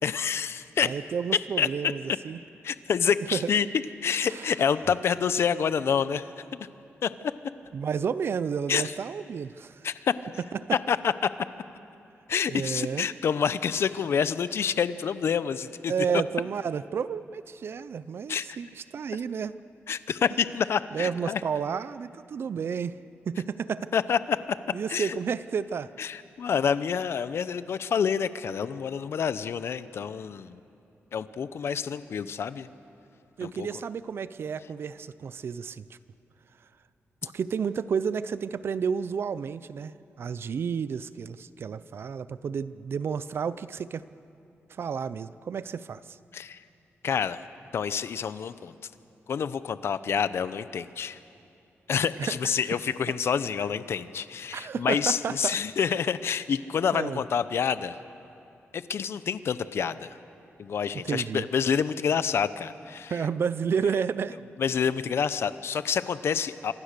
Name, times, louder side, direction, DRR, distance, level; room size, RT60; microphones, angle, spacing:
voice 1, 0.0-0.9 1.6-1.9 2.6-3.7 4.0-6.3 7.0-7.1 8.7-8.9 9.8-10.1 10.7-11.1 12.3-15.9 18.3-18.6 19.9-21.4 23.9-24.4 24.9-25.2 26.0-30.6 31.1-32.7 33.4-33.7 46.3-46.6 47.0-47.4 47.7-48.9 49.3-51.2 51.9-58.0 58.7-60.2 60.6-63.2 64.6-66.7, left 7 dB, 60° left, 14 dB, 0.7 m, -28 dB
voice 2, 0.8-2.4 3.3-3.5 4.2-4.4 7.7-9.8 10.6-10.8 12.5-13.1 15.9-19.5 20.9-23.0 23.3-23.9 24.7-25.9 33.4-36.0 37.2-44.0 44.8-46.2 52.3-52.4 54.5-55.6 56.8-57.2 61.1-61.4 63.1-64.4, right 6 dB, 55° right, 15 dB, 0.5 m, -31 dB
26.5 x 25.5 x 6.7 m, 2.7 s
wide cardioid pair, 150°, 5 cm